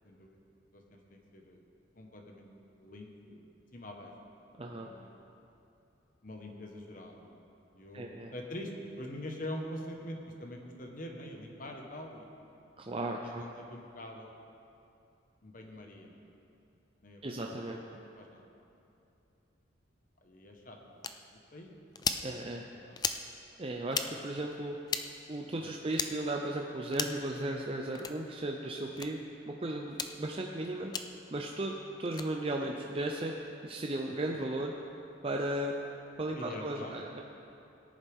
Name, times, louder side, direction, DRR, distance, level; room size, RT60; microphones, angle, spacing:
voice 1, 0.0-0.4 0.7-1.6 2.0-2.5 2.8-3.4 3.7-4.3 4.7-5.1 6.2-7.4 7.7-8.7 9.0-12.3 13.2-14.3 15.4-16.2 17.0-18.5 20.2-21.0 21.3-21.7 22.8-23.0 25.6-25.7 36.3-37.1, left 1 dB, 45° left, 2 dB, 1.2 m, -45 dB
voice 2, 4.6-4.9 7.9-8.3 12.8-13.4 17.2-17.8 22.2-22.6 23.6-24.8 25.3-29.2 29.5-30.9 31.3-33.3 33.6-34.7 35.2-35.7 36.2-37.2, right 1 dB, 30° right, 0 dB, 0.6 m, -35 dB
sound 1, 21.0-21.1 21.9-22.2 23.0-23.2 23.9-24.1 24.9-25.0 25.9-26.1 26.9-27.2 27.9-28.1 29.0-29.1 29.9-30.1 30.9-31.0 32.0-32.3, left 6 dB, 20° left, 0.4 m, -34 dB
18.5 x 10.5 x 3.6 m, 2.7 s
head